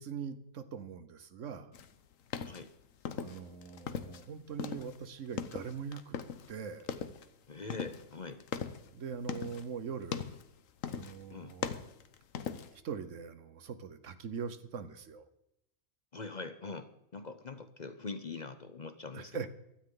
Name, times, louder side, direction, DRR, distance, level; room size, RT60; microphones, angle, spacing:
voice 1, 0.0-1.7 3.2-6.2 6.5-6.9 8.9-10.3 10.9-11.7 12.7-15.3 19.1-19.5, right 6 dB, 70° right, 12 dB, 1.3 m, -42 dB
sound 1, 1.7-4.3 4.5-6.6 6.8-7.3 7.7-9.7 10.0-10.5 10.8-11.2 11.5-12.8, left 7 dB, 90° left, 1.3 m, -39 dB
voice 2, 7.5-8.4 11.3-11.5 16.1-19.3, left 4 dB, 40° left, 10 dB, 0.8 m, -43 dB
16.0 x 13.0 x 3.8 m, 0.83 s
omnidirectional pair, 1.3 m